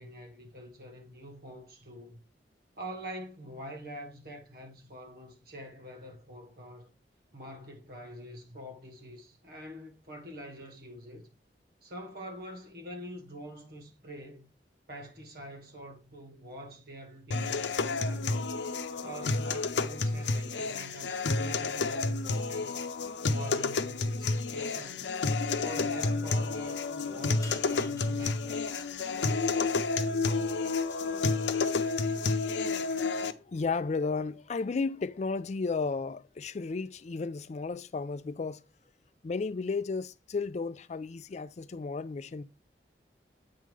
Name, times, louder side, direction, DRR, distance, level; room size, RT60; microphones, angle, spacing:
voice 1, 0.0-2.2 2.8-6.9 7.3-11.3 11.8-14.5 14.9-18.6 19.0-22.8 23.3-25.1 25.6-28.9 32.9-33.3, equal, 60° right, 2.0 m, -45 dB
sound 1, 17.3-33.3, left 3 dB, 90° left, 0.7 m, -30 dB
sound 2, 25.3-31.3, left 3 dB, 20° left, 1.6 m, -55 dB
voice 2, 33.2-38.6 39.2-42.4, left 4 dB, 40° left, 0.4 m, -33 dB
8.6 x 3.7 x 4.7 m
head